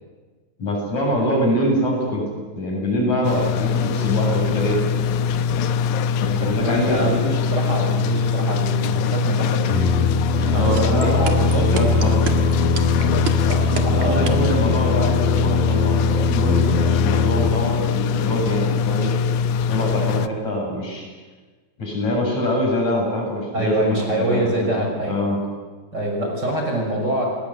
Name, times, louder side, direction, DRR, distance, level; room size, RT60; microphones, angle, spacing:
voice 1, 0.6-2.2 2.5-4.8 6.2-7.1 10.5-12.2 13.8-19.1 19.7-21.1 21.8-25.4, left 1 dB, 55° left, -1 dB, 9.0 m, -24 dB
sound 1, 3.2-20.3, left 6 dB, 70° left, 2.1 m, -22 dB
voice 2, 6.4-9.9 10.3-11.9 13.0-14.3 23.5-25.3 25.9-27.3, right 1 dB, 30° right, 1 dB, 6.3 m, -25 dB
Singing, 9.6-17.5, left 3 dB, 85° left, 4.3 m, -21 dB
sound 2, 10.8-14.5, right 10 dB, 65° right, 3.2 m, -28 dB
28.5 x 20.0 x 9.7 m, 1.4 s
omnidirectional pair, 4.0 m